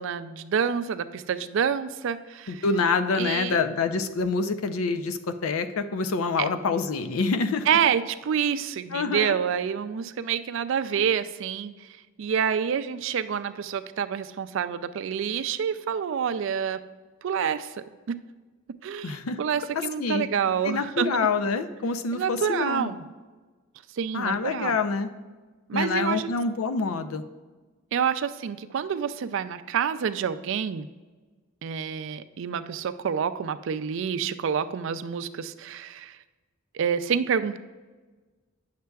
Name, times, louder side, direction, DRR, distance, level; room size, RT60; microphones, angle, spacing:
voice 1, 0.0-2.6 3.1-3.6 6.4-6.5 7.7-16.8 17.2-17.8 18.1-18.2 18.8-21.1 22.1-23.0 23.9-24.8 25.7-26.3 27.9-30.9 31.6-36.2 36.7-37.6, right 7 dB, 60° right, 11 dB, 0.3 m, -28 dB
voice 2, 2.5-7.7 8.9-9.4 19.0-19.4 20.0-20.3 20.6-22.9 24.1-25.1 25.7-27.2, left 4 dB, 85° left, 9 dB, 0.5 m, -26 dB
9.3 x 6.5 x 2.3 m, 1.3 s
head